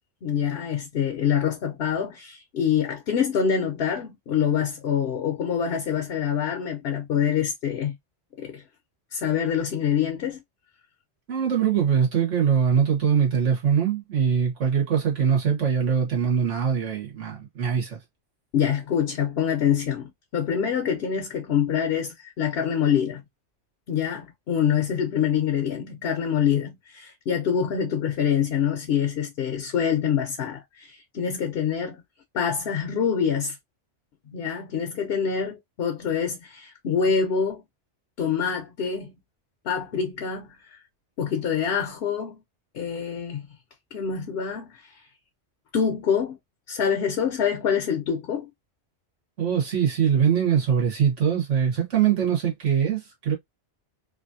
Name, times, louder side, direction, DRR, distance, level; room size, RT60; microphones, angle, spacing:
voice 1, 0.2-8.0 8.4-8.6 9.1-10.4 18.5-23.2 23.9-32.0 32.3-33.6 34.3-37.6 38.2-39.1 39.6-40.8 41.2-42.4 42.7-43.5 43.9-45.0 45.7-46.4 46.7-48.5, left 7 dB, 60° left, 0.8 m, -25 dB
voice 2, 11.3-18.0 49.4-53.3, right 7 dB, 80° right, 1.6 m, -22 dB
3.2 x 2.5 x 2.6 m
omnidirectional pair, 1.2 m